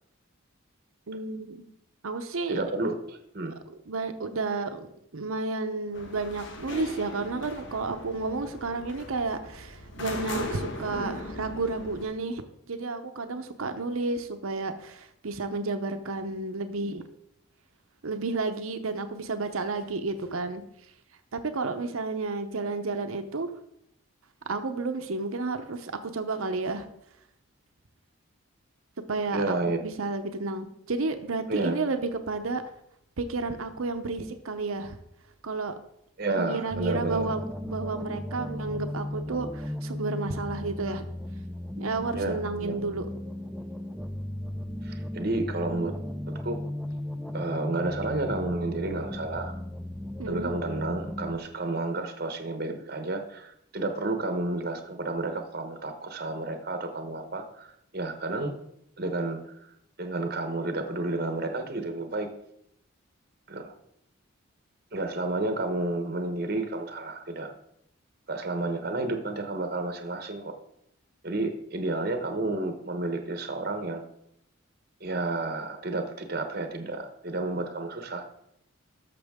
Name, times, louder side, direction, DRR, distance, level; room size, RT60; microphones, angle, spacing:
voice 1, 1.1-1.6 2.0-2.6 3.9-17.0 18.0-20.6 21.3-23.5 24.5-26.9 29.1-32.6 33.2-35.0 35.4-35.7 36.3-41.1 41.8-43.1 50.2-50.5, right 3 dB, 80° right, 8 dB, 0.8 m, -31 dB
voice 2, 2.5-3.5 29.3-29.8 31.5-31.8 36.2-37.4 42.1-42.8 44.8-45.9 46.3-46.6 47.3-49.5 50.3-58.5 59.0-62.3 63.5-63.7 64.9-67.5 68.3-70.6 71.2-74.0 75.0-78.3, right 2 dB, 45° right, 6 dB, 0.9 m, -31 dB
sound 1, 5.9-12.0, left 1 dB, 55° left, 1.2 m, -38 dB
sound 2, 36.7-51.4, left 1 dB, ahead, 0.5 m, -36 dB
12.0 x 6.8 x 3.6 m, 0.76 s
head